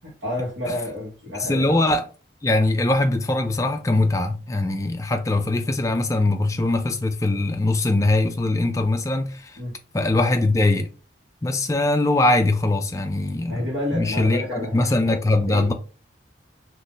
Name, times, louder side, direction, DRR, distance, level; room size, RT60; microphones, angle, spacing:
voice 1, 0.0-1.8 9.6-9.7 13.5-15.7, left 1 dB, 65° right, 1.3 m, -30 dB
voice 2, 1.4-2.1 2.4-9.6 9.9-10.9 11.4-15.7, left 2 dB, 15° left, 0.3 m, -22 dB
2.6 x 2.5 x 3.8 m
head